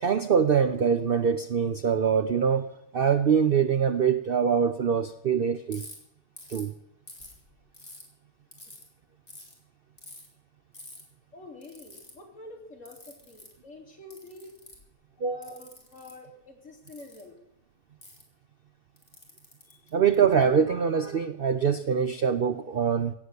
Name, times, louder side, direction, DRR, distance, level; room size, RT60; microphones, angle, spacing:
voice 1, 0.0-5.8 6.5-6.7 15.2-15.4 19.9-23.1, right 7 dB, 75° right, 10 dB, 0.5 m, -24 dB
Ratchet pawl, 5.7-5.9 6.4-6.7 7.1-8.0 8.5-8.8 9.3-9.5 10.0-10.3 10.7-11.0 11.6-12.1 12.9-13.5 14.1-14.9 15.4-16.1 16.9-17.2 18.0-18.2 19.0-20.4, left 2 dB, 20° left, 3.3 m, -47 dB
voice 2, 11.3-14.5 15.1-17.4 19.6-19.9, left 2 dB, 45° left, 1 dB, 3.0 m, -47 dB
16.5 x 8.0 x 8.2 m, 0.77 s
omnidirectional pair, 1.8 m